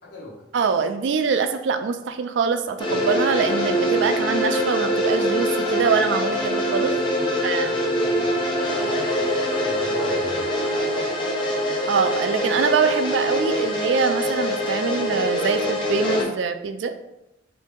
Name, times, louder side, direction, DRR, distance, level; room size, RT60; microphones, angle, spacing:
voice 1, 0.0-0.4 7.1-10.5, left 1 dB, 60° left, -6 dB, 1.2 m, -40 dB
voice 2, 0.5-6.9 7.4-7.7 11.9-16.9, right 5 dB, 70° right, 9 dB, 0.3 m, -24 dB
sound 1, 2.8-16.3, equal, 25° left, 0.5 m, -24 dB
2.9 x 2.6 x 3.6 m, 0.88 s
head